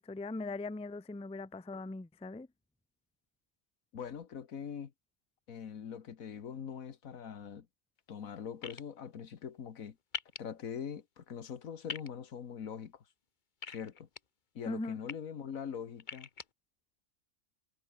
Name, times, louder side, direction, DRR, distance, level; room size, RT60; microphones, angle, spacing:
voice 1, 0.0-2.5 14.7-15.0, left 2 dB, 10° left, 0.4 m, -40 dB
voice 2, 3.9-4.9 5.5-7.7 8.1-10.0 10.4-13.0 13.7-14.1 14.6-16.3, left 7 dB, 85° left, 1.7 m, -42 dB
sound 1, 8.6-8.8 10.1-10.4 11.9-12.1 13.6-14.2 14.8-15.1 16.0-16.4, left 6 dB, 40° left, 1.0 m, -41 dB
omnidirectional pair, 1.4 m